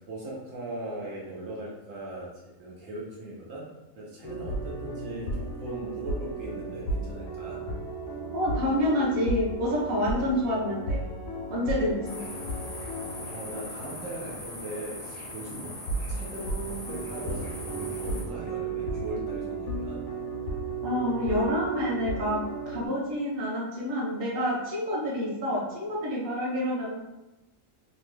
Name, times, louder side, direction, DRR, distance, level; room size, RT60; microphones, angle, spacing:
voice 1, 0.0-2.3 2.6-3.7 3.9-7.6 13.2-15.7 16.1-20.0, right 1 dB, 75° right, -4 dB, 1.1 m, -39 dB
sound 1, 4.2-14.4 14.7-14.8 15.7-22.9, right 2 dB, 80° left, 1.0 m, -34 dB
voice 2, 8.3-11.0 11.5-12.0 20.8-22.4 22.7-27.0, left 1 dB, 50° right, -5 dB, 1.0 m, -28 dB
sound 2, 12.1-18.2, left 1 dB, 45° left, 0.5 m, -40 dB
3.0 x 2.2 x 3.1 m, 0.98 s
omnidirectional pair, 1.4 m